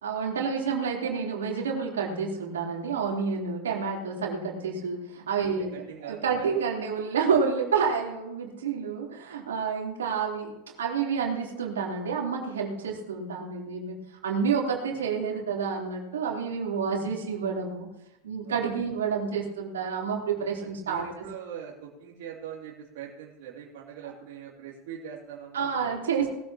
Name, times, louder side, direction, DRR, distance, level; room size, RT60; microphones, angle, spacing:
voice 1, 0.0-10.5 10.8-17.9 18.2-21.1 25.5-26.3, right 6 dB, 90° right, -2 dB, 3.6 m, -29 dB
voice 2, 5.4-6.6 18.4-18.8 20.6-26.3, right 8 dB, 70° right, -4 dB, 2.6 m, -42 dB
19.5 x 14.0 x 3.0 m, 0.91 s
hypercardioid pair, 95°, 0 cm